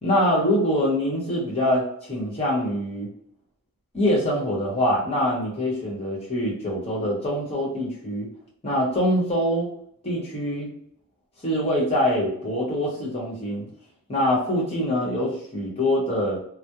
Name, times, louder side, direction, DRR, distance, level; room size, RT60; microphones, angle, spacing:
voice 1, 0.0-3.1 3.9-8.3 8.6-9.7 10.0-10.7 11.4-13.6 14.1-16.4, equal, 25° left, -4 dB, 0.9 m, -24 dB
2.3 x 2.0 x 2.8 m, 0.67 s
head